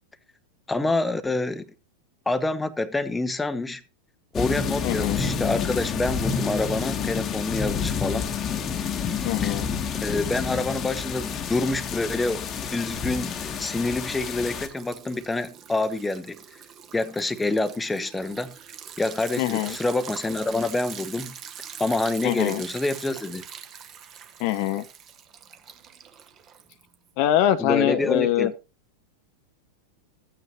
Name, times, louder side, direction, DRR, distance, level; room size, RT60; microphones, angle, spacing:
voice 1, 0.7-1.7 2.3-3.8 4.3-8.3 9.4-9.6 10.0-16.4 16.9-18.5 19.0-21.3 21.8-23.5 27.6-28.5, left 2 dB, 10° left, 0.8 m, -27 dB
sound 1, 4.3-14.7, left 6 dB, 30° left, 1.1 m, -29 dB
voice 2, 4.8-5.2 9.2-9.7 19.4-19.8 22.2-22.6 24.4-24.8 27.2-28.5, left 12 dB, 45° left, 0.6 m, -23 dB
Liquid, 10.0-10.6 10.9-27.1, right 8 dB, 30° right, 1.1 m, -43 dB
14.5 x 9.1 x 3.0 m
figure-of-eight pair, 90°, 0 cm